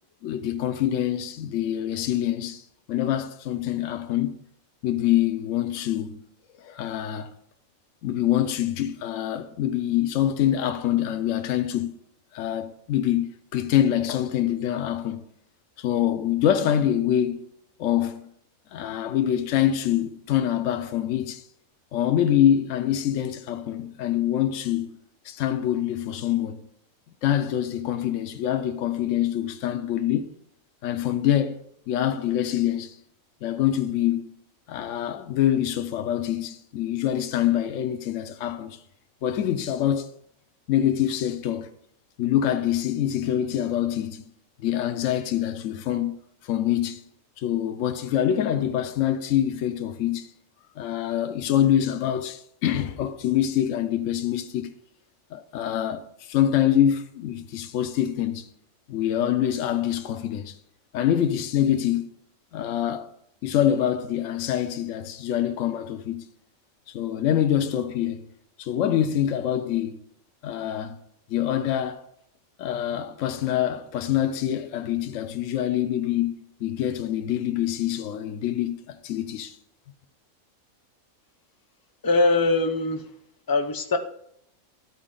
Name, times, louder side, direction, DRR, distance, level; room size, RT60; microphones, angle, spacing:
voice 1, 0.2-4.4 4.8-6.2 6.6-7.3 8.0-11.9 12.3-15.2 15.8-17.5 17.8-18.2 18.7-21.5 21.9-25.0 25.2-26.6 27.2-30.3 30.8-33.0 33.4-34.3 34.7-38.8 39.2-40.1 40.7-41.7 42.2-44.3 44.6-47.0 47.4-50.3 50.8-54.7 55.3-58.5 58.9-60.6 60.9-62.1 62.5-63.1 63.4-66.3 66.9-68.3 68.6-70.0 70.4-71.0 71.3-72.0 72.6-76.3 76.6-79.6, left 11 dB, 70° left, 0.9 m, -25 dB
voice 2, 82.0-83.1 83.5-84.0, left 3 dB, 30° left, 0.4 m, -22 dB
13.0 x 4.4 x 3.7 m
omnidirectional pair, 1.4 m